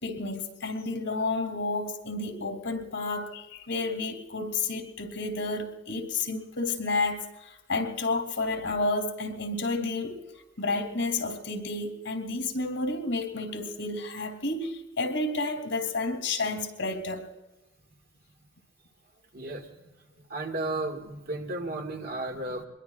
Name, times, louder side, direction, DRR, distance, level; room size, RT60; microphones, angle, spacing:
voice 1, 0.0-10.2 10.6-17.2, left 3 dB, 80° left, 3.0 m, -31 dB
voice 2, 19.3-19.9 20.3-22.6, right 2 dB, 55° right, 2.0 m, -34 dB
23.0 x 22.0 x 2.5 m
head